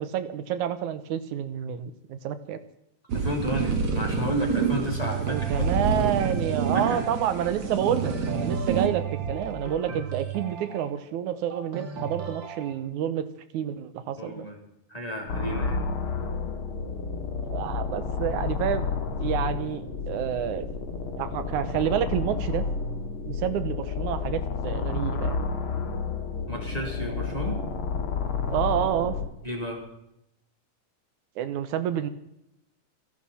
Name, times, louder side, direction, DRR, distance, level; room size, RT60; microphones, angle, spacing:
voice 1, 0.0-2.6 5.2-13.3 13.5-14.5 17.5-18.9 19.2-20.7 21.2-22.7 23.3-25.4 28.5-29.2 31.4-32.1, right 10 dB, 80° right, 11 dB, 2.4 m, -29 dB
voice 2, 3.1-6.2 6.7-7.0 14.2-14.6 14.9-15.9 26.5-27.6 29.4-29.8, equal, 10° left, 0 dB, 3.4 m, -32 dB
sound 1, 3.1-8.9, right 5 dB, 60° right, 3.3 m, -28 dB
sound 2, 4.8-12.7, right 6 dB, 45° right, 2.2 m, -35 dB
sound 3, 15.3-29.3, left 5 dB, 50° left, 2.5 m, -30 dB
28.5 x 11.5 x 4.3 m, 0.80 s
omnidirectional pair, 3.4 m